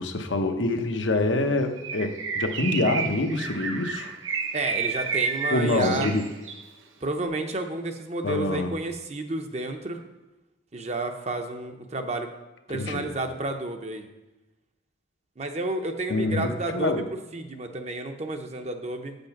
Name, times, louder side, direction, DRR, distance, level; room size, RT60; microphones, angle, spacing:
voice 1, 0.0-4.1 5.5-6.2 8.2-8.7 12.7-13.1 16.1-17.0, left 2 dB, 80° left, 6 dB, 0.8 m, -26 dB
Bird, 1.8-6.7, right 5 dB, 90° right, 0.8 m, -31 dB
voice 2, 4.5-6.1 7.0-10.0 10.7-12.3 12.7-14.1 15.4-19.2, right 2 dB, 35° right, 6 dB, 0.6 m, -31 dB
8.0 x 5.2 x 5.8 m, 1.1 s
head